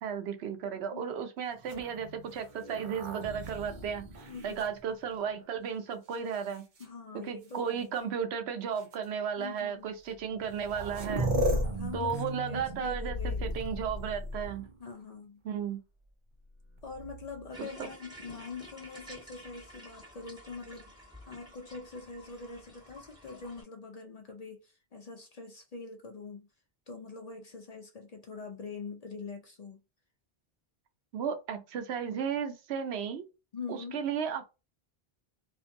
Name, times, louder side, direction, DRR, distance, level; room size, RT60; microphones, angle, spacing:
voice 1, 0.0-6.6 7.1-11.3 11.9-14.7 15.4-15.8 17.6-17.9 31.1-33.2 33.7-34.5, right 7 dB, 90° right, 0.9 m, -34 dB
Machine Glitches, 1.6-5.4 6.1-6.8 7.9-8.0 8.8-8.9 10.1-10.2 10.4-14.8 16.8-17.5, equal, 55° right, 0.7 m, -36 dB
voice 2, 4.3-4.6 6.8-7.8 9.4-9.9 11.3-13.5 14.8-15.4 16.8-26.5 26.9-29.8 33.5-34.0, left 4 dB, 50° left, 0.5 m, -44 dB
sound 1, 17.5-23.6, equal, 5° right, 1.3 m, -51 dB
2.6 x 2.5 x 2.5 m
omnidirectional pair, 1.1 m